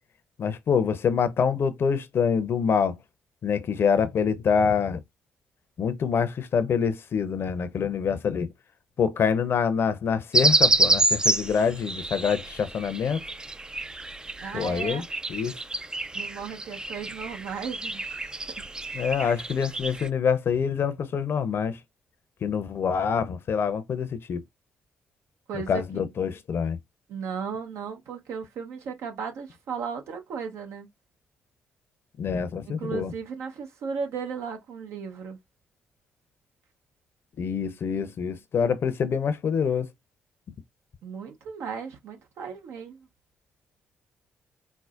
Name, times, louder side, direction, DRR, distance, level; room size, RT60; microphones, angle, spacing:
voice 1, 0.4-3.0 3.4-5.0 5.8-8.5 9.0-13.2 14.5-15.0 15.3-15.6 18.9-21.8 22.4-24.4 25.7-26.8 32.2-33.1 37.4-39.9, left 6 dB, 55° left, 0.6 m, -25 dB
sound 1, 10.3-20.1, right 2 dB, 15° right, 0.4 m, -28 dB
voice 2, 14.4-15.0 16.1-18.1 18.6-18.7 25.5-26.0 27.1-30.9 32.6-35.4 41.0-43.0, right 6 dB, 70° right, 0.9 m, -35 dB
4.5 x 2.0 x 2.4 m
hypercardioid pair, 45°, 5 cm